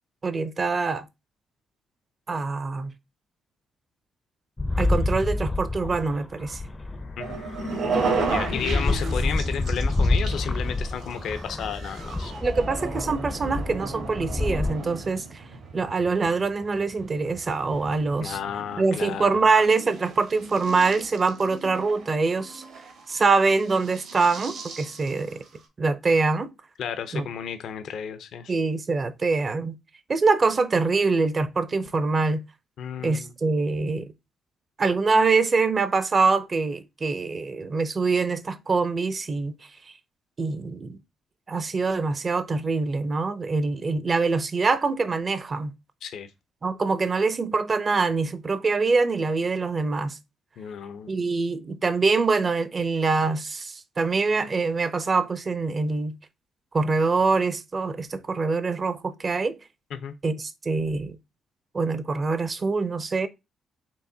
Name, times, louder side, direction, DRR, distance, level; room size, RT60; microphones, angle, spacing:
voice 1, 0.2-1.1 2.3-2.9 4.8-6.6 12.4-15.2 15.7-18.4 18.8-22.6 23.1-25.4 25.8-26.5 27.1-27.3 28.5-29.8 30.1-32.4 33.0-34.1 34.8-39.6 40.4-41.0 41.5-45.7 46.6-50.2 51.1-56.1 56.7-59.6 60.2-61.2 61.7-63.3, right 4 dB, 35° right, 0.5 m, -24 dB
sound 1, 4.6-14.8, left 2 dB, 15° left, 0.4 m, -28 dB
Laughter, 6.7-11.7, left 2 dB, 90° left, 1.5 m, -37 dB
sound 2, 7.2-25.7, right 5 dB, 75° right, 1.5 m, -35 dB
voice 2, 8.2-12.3 18.2-19.5 26.8-28.5 32.8-33.3 46.0-46.3 50.6-51.1 59.9-60.1, left 7 dB, 70° left, 0.5 m, -33 dB
4.6 x 3.3 x 2.6 m
cardioid pair, 90°, 0 cm